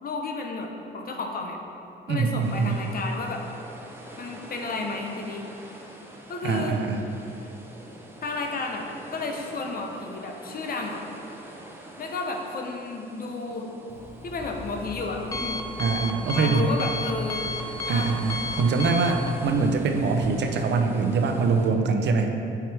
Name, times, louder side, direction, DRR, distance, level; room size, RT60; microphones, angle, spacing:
voice 1, 0.0-1.6 2.1-3.4 4.2-5.4 6.3-6.8 7.4-7.5 8.2-8.9 9.1-11.0 12.0-13.7 14.2-15.6 16.3-17.5 17.8-18.1, left 3 dB, 45° left, 2 dB, 0.9 m, -32 dB
voice 2, 2.1-2.8 6.4-7.1 15.8-16.7 17.9-22.3, right 4 dB, 60° right, 4 dB, 0.6 m, -24 dB
sound 1, 2.4-21.7, right 1 dB, 10° right, 0.9 m, -45 dB
Alarm, 13.9-20.3, left 2 dB, 15° left, 0.4 m, -34 dB
7.6 x 4.7 x 3.5 m, 2.8 s
cardioid pair, 90°, 20 cm